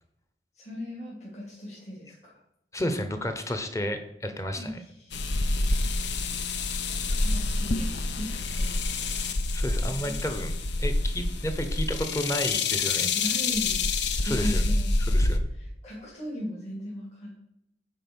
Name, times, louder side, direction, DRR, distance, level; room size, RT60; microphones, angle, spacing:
voice 1, 0.5-2.4 4.6-5.8 7.0-9.2 10.0-10.1 13.1-13.9 14.2-17.3, equal, 40° left, -5 dB, 2.5 m, -38 dB
voice 2, 2.7-4.8 9.5-10.5 10.8-13.1 14.2-14.6 15.1-15.4, left 1 dB, 15° left, 8 dB, 0.9 m, -31 dB
sound 1, 5.1-15.4, left 3 dB, 85° left, 0.7 m, -27 dB
8.9 x 4.6 x 6.2 m, 0.79 s
head